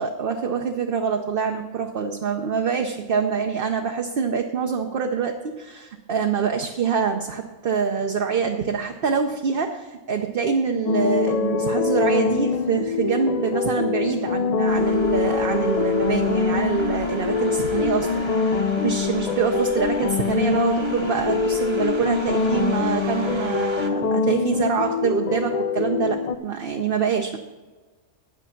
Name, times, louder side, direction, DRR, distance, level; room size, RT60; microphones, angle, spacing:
voice 1, 0.0-27.4, right 6 dB, 50° right, 3 dB, 0.9 m, -25 dB
sound 1, 10.9-26.4, left 5 dB, 55° left, 0.4 m, -24 dB
sound 2, 14.7-23.9, right 2 dB, 25° right, 0.9 m, -38 dB
9.9 x 9.3 x 5.8 m, 1.3 s
omnidirectional pair, 1.3 m